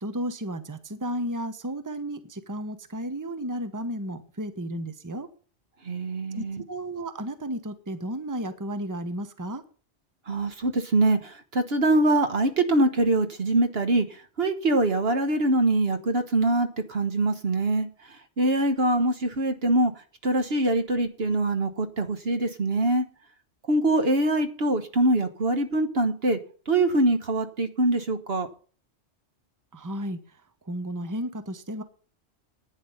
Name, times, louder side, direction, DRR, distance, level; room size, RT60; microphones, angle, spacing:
voice 1, 0.0-5.3 6.3-9.6 29.7-30.2 30.6-31.8, equal, 15° right, 1.0 m, -33 dB
voice 2, 5.8-6.6 10.3-19.9 20.2-23.0 23.7-26.4 26.7-28.5, right 2 dB, 60° right, 1.4 m, -24 dB
10.5 x 9.9 x 5.6 m
omnidirectional pair, 1.2 m